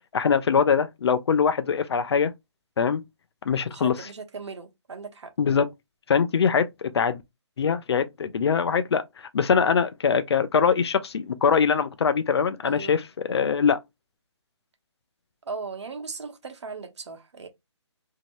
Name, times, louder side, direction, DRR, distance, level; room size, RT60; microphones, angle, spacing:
voice 1, 0.1-2.3 2.8-3.0 3.5-4.1 5.4-5.7 6.1-7.2 7.6-13.8, left 6 dB, 60° left, 0.5 m, -23 dB
voice 2, 3.7-5.3 12.6-12.9 15.5-17.5, right 4 dB, 70° right, 0.9 m, -37 dB
2.8 x 2.6 x 2.9 m
hypercardioid pair, 155°, 15 cm